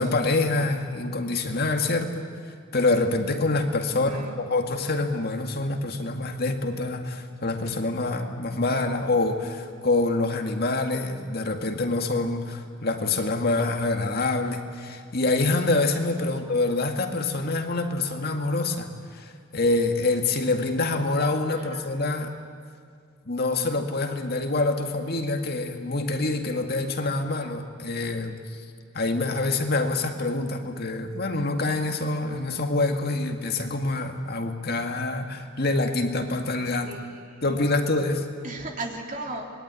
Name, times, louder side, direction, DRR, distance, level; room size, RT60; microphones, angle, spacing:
voice 1, 0.0-2.3 2.7-22.3 23.3-28.4 28.9-36.9 37.4-38.3, left 2 dB, 50° left, 4 dB, 2.1 m, -26 dB
voice 2, 3.9-4.4 16.3-16.4 21.6-21.9 36.8-37.4 38.4-39.5, right 2 dB, 40° right, 1 dB, 3.4 m, -36 dB
25.5 x 22.0 x 9.8 m, 2.3 s
head